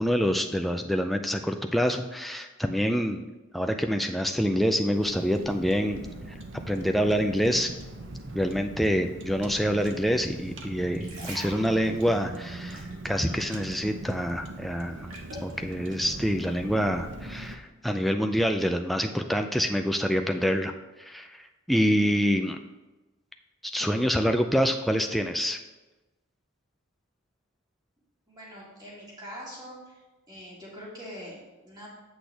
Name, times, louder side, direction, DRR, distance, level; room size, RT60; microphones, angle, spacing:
voice 1, 0.0-3.3 3.5-6.0 6.3-6.4 6.7-7.7 8.3-15.1 15.4-20.7 21.0-22.6 23.7-25.6, equal, ahead, 5 dB, 0.3 m, -26 dB
Car, 4.9-17.5, right 2 dB, 60° right, 0.7 m, -40 dB
sound 1, 10.8-13.8 14.1-15.5 16.1-16.3, right 1 dB, 85° right, 1.9 m, -44 dB
voice 2, 28.3-30.0 30.3-31.9, equal, 20° right, -6 dB, 2.1 m, -43 dB
7.8 x 6.1 x 3.4 m, 1.1 s
head